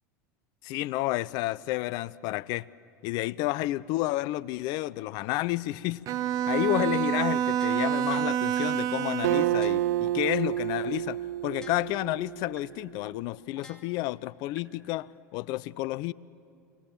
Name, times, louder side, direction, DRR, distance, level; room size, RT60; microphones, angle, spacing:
voice 1, 0.6-2.7 3.0-6.0 6.5-11.2 11.4-16.1, left 17 dB, 50° left, 0.5 m, -30 dB
Bowed string instrument, 6.1-9.7, right 10 dB, 40° right, 0.9 m, -28 dB
sound 1, 7.6-8.1 8.6-8.7 9.1-9.2 9.6-10.1 10.6-10.7 11.1-11.2 11.6-12.1 12.6-12.7 13.1-13.2 13.6-14.1 14.6-14.7, left 2 dB, 10° left, 2.3 m, -50 dB
Acoustic guitar, 9.2-12.8, right 14 dB, 70° right, 0.4 m, -29 dB
25.0 x 18.0 x 7.2 m
hypercardioid pair, 80°, 9 cm